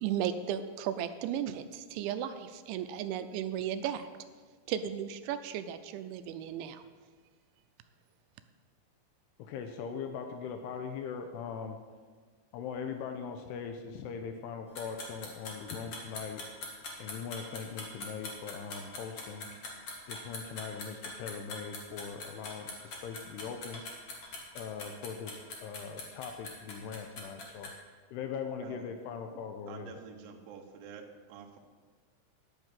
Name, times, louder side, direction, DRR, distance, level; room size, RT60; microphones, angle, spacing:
voice 1, 0.0-4.1 4.7-6.8, right 9 dB, 80° right, 10 dB, 2.9 m, -35 dB
voice 2, 9.4-11.8 12.5-16.4 17.0-19.5 20.1-23.8 24.5-27.7 28.1-30.0, left 6 dB, 85° left, 6 dB, 2.4 m, -40 dB
sound 1, 14.8-27.7, left 3 dB, 50° left, 1.7 m, -42 dB
voice 3, 28.6-28.9 29.3-31.6, right 6 dB, 65° right, 2 dB, 2.3 m, -49 dB
12.0 x 6.4 x 9.0 m, 1.5 s
omnidirectional pair, 5.5 m